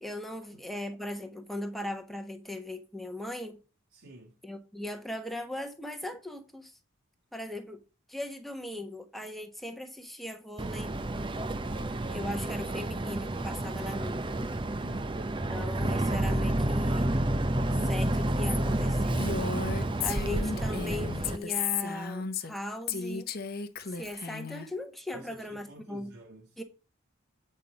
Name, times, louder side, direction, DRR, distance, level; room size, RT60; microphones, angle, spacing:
voice 1, 0.0-3.6 4.4-6.8 7.3-7.8 8.1-10.9 12.1-14.2 15.5-17.1 17.8-19.2 20.0-23.3 23.9-26.1 26.6-26.7, left 1 dB, ahead, 1.2 m, -39 dB
voice 2, 3.9-4.3 14.6-15.2 25.1-26.6, right 2 dB, 70° right, 2.3 m, -50 dB
Boat Water vehicle, 10.6-21.4, right 1 dB, 20° right, 0.6 m, -30 dB
Female speech woman speaking, 19.2-22.6 22.9-24.7, left 6 dB, 45° left, 0.8 m, -34 dB
8.6 x 5.5 x 5.0 m
head